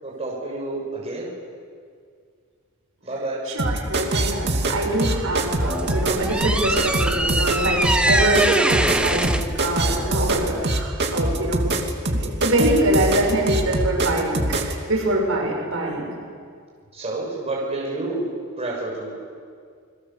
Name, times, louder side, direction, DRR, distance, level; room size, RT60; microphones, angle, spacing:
voice 1, 0.0-1.3 3.0-3.4 16.9-18.3 18.6-19.2, right 2 dB, 30° right, -3 dB, 6.4 m, -29 dB
voice 2, 3.5-11.7 12.1-16.0, right 1 dB, 75° right, -1 dB, 7.2 m, -24 dB
sound 1, 3.6-14.7, right 2 dB, 55° right, 2.5 m, -23 dB
sound 2, 5.4-10.6, right 1 dB, 5° right, 1.1 m, -24 dB
29.0 x 22.0 x 7.3 m, 2.1 s
head